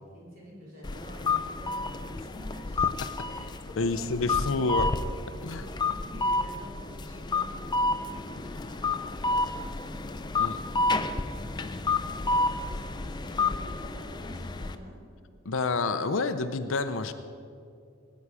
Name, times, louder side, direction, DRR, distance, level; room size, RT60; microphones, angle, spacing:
voice 1, 0.1-2.9 3.2-4.1 4.3-4.8 5.4-15.0, equal, 40° right, -5 dB, 4.0 m, -48 dB
sound 1, 0.8-14.8, left 3 dB, 20° left, 0.4 m, -30 dB
voice 2, 3.8-4.9 5.4-5.7 10.4-10.6 15.4-17.1, left 3 dB, 60° left, 9 dB, 0.6 m, -28 dB
20.0 x 9.5 x 4.8 m, 2.4 s
head